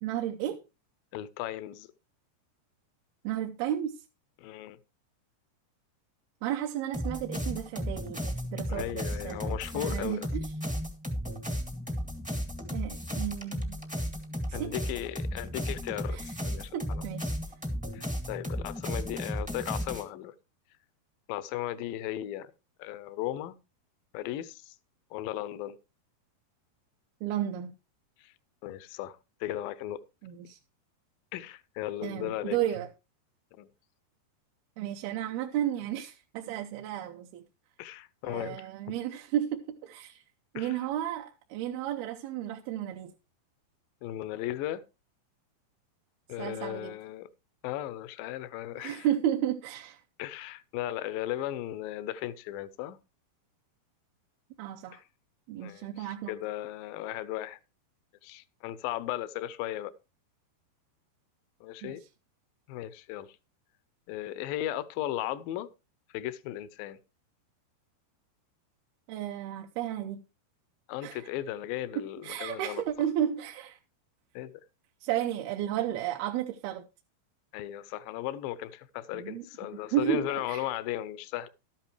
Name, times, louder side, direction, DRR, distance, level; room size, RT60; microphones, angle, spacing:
voice 1, 0.0-0.6 3.2-3.9 6.4-10.2 12.7-13.8 14.5-14.7 16.1-16.3 16.7-17.3 27.2-27.7 30.2-30.6 32.0-32.9 34.8-37.4 38.2-40.2 40.5-43.1 46.4-46.9 48.8-50.0 54.6-55.0 55.5-56.3 61.8-62.0 69.1-70.2 71.0-71.2 72.2-73.8 75.0-76.8 79.1-79.5 79.9-80.7, right 11 dB, 75° right, 2.6 m, -33 dB
voice 2, 1.1-1.9 4.4-4.8 8.7-10.3 14.5-16.2 16.5-17.0 17.9-20.4 21.3-22.5 22.8-23.6 24.1-24.8 25.1-25.8 28.2-28.3 28.6-30.0 31.3-32.6 33.6-33.7 37.8-38.7 40.6-40.9 44.0-44.8 46.3-47.3 47.6-49.1 50.2-53.0 54.9-55.0 55.6-57.6 58.2-59.9 61.6-62.0 62.7-63.4 64.1-65.7 66.1-67.0 70.9-72.8 74.4-74.6 77.5-81.5, left 13 dB, 80° left, 2.1 m, -36 dB
sound 1, 6.9-20.0, equal, 5° right, 0.5 m, -34 dB
13.0 x 10.5 x 3.2 m
omnidirectional pair, 4.7 m